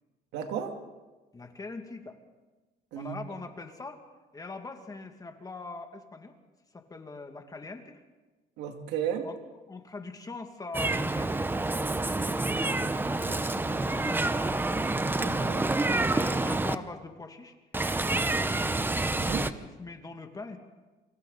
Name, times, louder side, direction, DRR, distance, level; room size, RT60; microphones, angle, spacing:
voice 1, 0.3-0.7 2.9-3.1 8.6-9.3 15.2-15.6 19.1-19.5, right 9 dB, 90° right, 4 dB, 2.5 m, -34 dB
voice 2, 1.3-2.2 3.0-4.0 4.3-6.3 6.7-8.0 9.2-9.4 9.7-12.0 12.5-14.6 15.1-17.5 18.1-18.7 19.4-20.6, left 3 dB, 20° left, 5 dB, 2.2 m, -42 dB
Meow, 10.7-16.8 17.7-19.5, right 2 dB, 10° right, 0.8 m, -28 dB
28.5 x 25.0 x 4.1 m, 1.2 s
cardioid pair, 110°, 17 cm